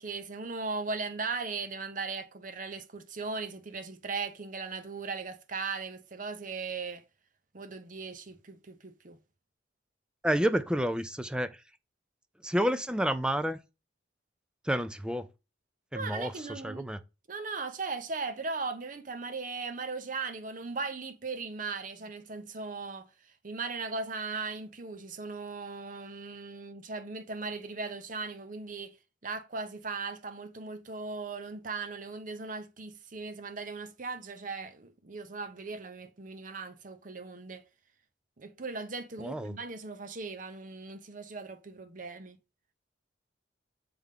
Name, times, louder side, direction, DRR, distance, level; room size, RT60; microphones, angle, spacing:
voice 1, 0.0-7.0 7.5-9.2 15.9-16.9 17.3-23.1 23.4-29.0 29.2-37.6 38.4-42.4, right 4 dB, 45° right, 0.8 m, -38 dB
voice 2, 10.2-11.5 12.4-13.6 14.7-15.3 15.9-17.0 39.2-39.5, equal, 5° right, 0.4 m, -29 dB
7.8 x 3.5 x 3.6 m
head